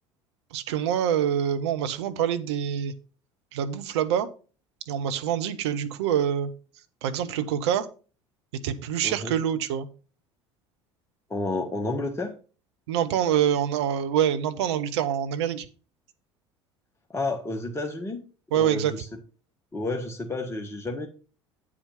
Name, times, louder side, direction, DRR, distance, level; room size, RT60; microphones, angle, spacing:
voice 1, 0.5-2.9 3.5-4.3 4.9-6.5 7.0-7.9 8.6-9.9 12.9-15.7 18.5-19.0, right 9 dB, 70° right, 9 dB, 0.9 m, -25 dB
voice 2, 9.0-9.3 11.3-12.3 17.1-18.2 18.6-19.0 19.7-21.1, left 2 dB, 15° left, 3 dB, 1.5 m, -30 dB
8.8 x 4.9 x 5.9 m, 0.36 s
figure-of-eight pair, 65°, 15 cm